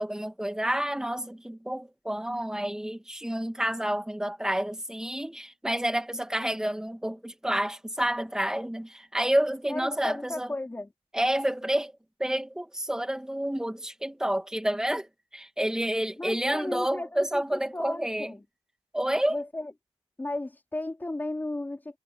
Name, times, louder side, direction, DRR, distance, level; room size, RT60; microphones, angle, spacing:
voice 1, 0.0-10.5 11.1-18.3 18.9-19.4, right 1 dB, 5° right, 2.2 m, -29 dB
voice 2, 9.7-10.9 16.2-18.4 19.3-19.7 20.2-22.0, left 2 dB, 15° left, 3.8 m, -35 dB
wide cardioid pair, 130°, 12 cm